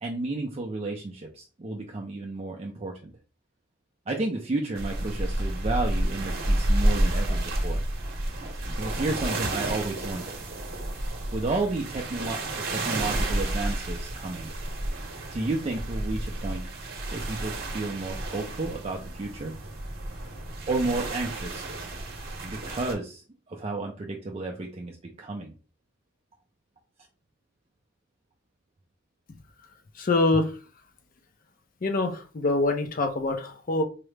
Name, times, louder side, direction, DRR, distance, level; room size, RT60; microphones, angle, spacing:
voice 1, 0.0-3.1 4.1-7.8 8.8-10.4 11.3-12.4 12.7-14.5 15.3-16.7 17.1-19.5 20.7-21.6 22.5-25.5, right 2 dB, 30° right, 0 dB, 0.4 m, -32 dB
sound 1, 4.8-22.9, right 1 dB, 50° right, 0.8 m, -30 dB
voice 2, 30.0-30.5 31.8-33.8, left 2 dB, 45° left, 6 dB, 0.5 m, -25 dB
4.6 x 2.0 x 3.2 m, 0.36 s
head